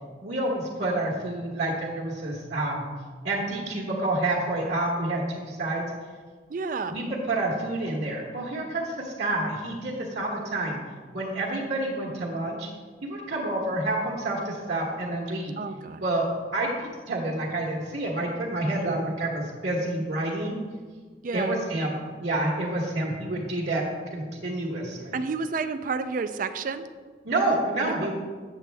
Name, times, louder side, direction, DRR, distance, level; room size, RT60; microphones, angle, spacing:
voice 1, 0.2-2.9 3.2-5.8 6.9-10.8 11.1-12.7 13.0-15.5 16.0-20.6 21.3-23.8 24.1-25.1 27.2-28.1, right 2 dB, 70° right, -4 dB, 1.2 m, -28 dB
voice 2, 6.5-7.0 15.6-16.0 18.8-19.0 21.2-21.6 25.1-26.9 27.8-28.1, right 4 dB, 50° right, 10 dB, 0.4 m, -31 dB
8.3 x 7.2 x 3.4 m, 1.5 s
head